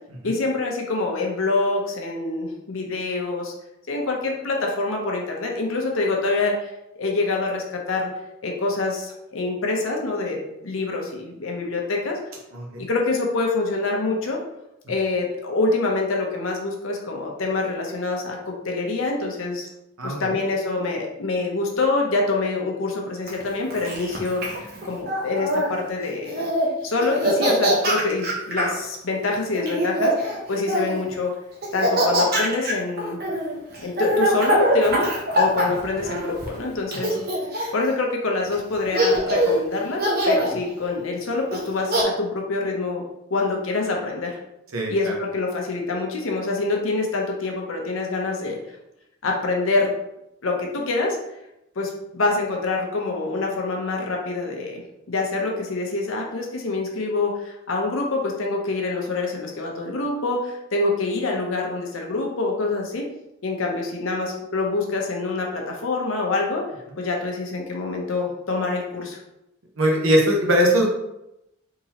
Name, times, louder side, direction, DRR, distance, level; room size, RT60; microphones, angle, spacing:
voice 1, 0.2-3.5 3.9-8.1 8.4-12.2 12.8-14.4 14.9-19.7 20.0-26.5 26.8-31.3 31.7-33.2 33.8-37.2 37.7-43.0 43.3-44.4 44.9-48.8 49.2-49.9 50.4-51.2 51.8-54.8 55.1-63.1 63.4-66.7 67.0-69.2, left 3 dB, 70° left, 0 dB, 0.7 m, -26 dB
voice 2, 12.5-12.8 20.0-20.4 37.1-37.2 44.7-45.1 69.8-70.9, equal, 80° right, 0 dB, 0.9 m, -21 dB
Laughter, 23.3-25.7 26.2-26.7 27.0-28.8 29.5-31.0 31.6-36.5 36.9-37.9 38.5-38.6 38.9-39.6 40.0-40.5 41.5-42.0, equal, 50° right, 0.7 m, -23 dB
3.7 x 2.9 x 2.8 m, 0.87 s
head